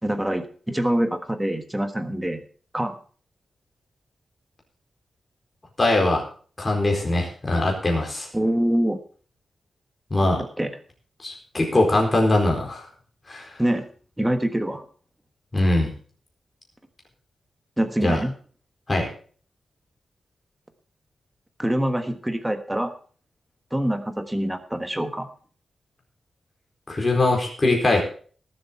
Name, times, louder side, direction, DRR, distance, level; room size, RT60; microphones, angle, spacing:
voice 1, 0.0-2.4 2.7-2.9 8.3-9.0 10.6-10.7 13.6-13.9 14.2-14.8 17.8-18.3 21.6-22.9 23.7-25.3, right 1 dB, 5° right, 8 dB, 1.4 m, -25 dB
voice 2, 5.8-6.2 6.6-8.3 10.1-10.4 11.2-12.9 13.3-13.5 15.5-15.9 18.0-18.2 18.9-19.1 26.9-28.0, left 2 dB, 20° left, 1 dB, 4.4 m, -21 dB
19.0 x 7.8 x 4.5 m, 0.43 s
wide cardioid pair, 175°, 0 cm